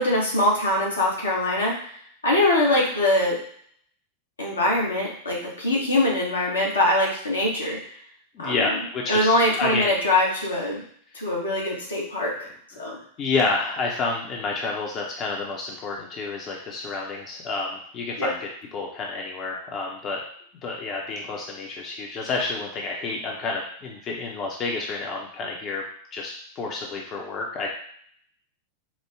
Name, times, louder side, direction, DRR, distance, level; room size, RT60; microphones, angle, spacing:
voice 1, 0.0-1.8 2.2-3.4 4.4-7.8 8.4-8.8 9.1-10.8 11.1-12.5 12.8-13.0 18.2-18.3, left 1 dB, 75° left, -3 dB, 1.1 m, -23 dB
voice 2, 8.3-9.3 9.6-9.9 12.8-20.2 20.6-25.8 26.1-27.7, left 3 dB, 35° left, -1 dB, 0.7 m, -29 dB
5.0 x 2.2 x 3.4 m, 0.62 s
figure-of-eight pair, 90°, 0 cm